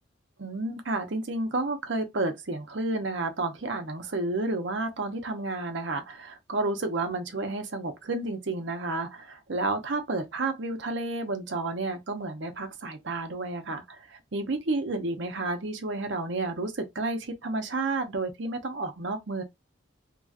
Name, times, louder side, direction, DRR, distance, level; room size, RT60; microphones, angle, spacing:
voice 1, 0.4-19.4, right 2 dB, 70° right, 0.8 m, -31 dB
3.0 x 2.8 x 2.4 m
head